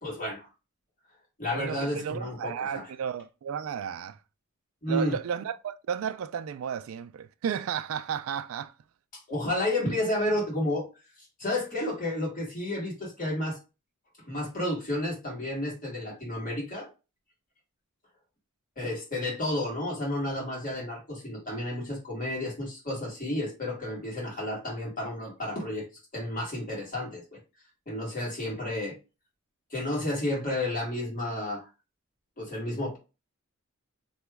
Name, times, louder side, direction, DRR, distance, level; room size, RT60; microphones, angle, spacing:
voice 1, 0.0-0.5 1.4-2.8 4.8-5.1 9.1-10.9 11.4-13.6 14.3-16.9 18.8-25.9 26.1-27.4 27.9-29.0 29.7-31.7 32.4-33.0, left 1 dB, 40° left, 1.6 m, -31 dB
voice 2, 1.5-4.2 4.9-8.7, right 7 dB, 70° right, 0.3 m, -33 dB
3.0 x 2.3 x 3.3 m
head